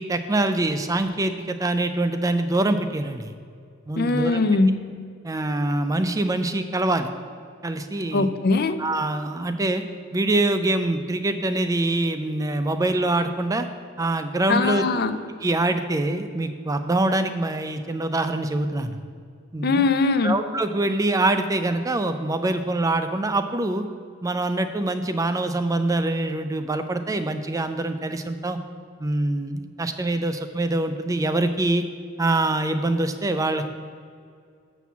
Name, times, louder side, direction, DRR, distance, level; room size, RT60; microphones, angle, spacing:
voice 1, 0.0-3.3 3.9-4.4 5.2-7.1 7.6-8.3 8.8-9.8 10.1-13.7 14.0-19.0 19.5-19.9 20.2-23.9 24.2-28.6 29.0-31.8 32.2-33.7, right 2 dB, 15° right, 9 dB, 0.4 m, -24 dB
voice 2, 4.0-4.8 8.1-8.8 14.5-15.1 19.6-20.3, left 3 dB, 50° left, 10 dB, 0.5 m, -21 dB
7.0 x 6.1 x 7.1 m, 2.3 s
head